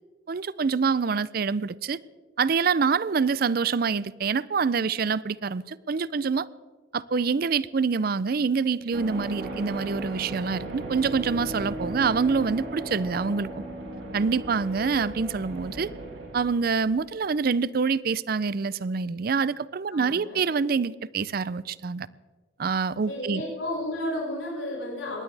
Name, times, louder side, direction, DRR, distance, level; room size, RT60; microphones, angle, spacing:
voice 1, 0.3-2.0 2.4-6.5 6.9-13.5 14.1-15.9 16.3-22.1 22.6-23.4, right 5 dB, 50° right, 0.4 m, -26 dB
sound 1, 8.9-17.5, right 1 dB, 85° right, 3.8 m, -36 dB
voice 2, 19.9-20.4 23.1-25.2, left 1 dB, 75° left, 5.4 m, -32 dB
21.0 x 17.0 x 3.4 m
head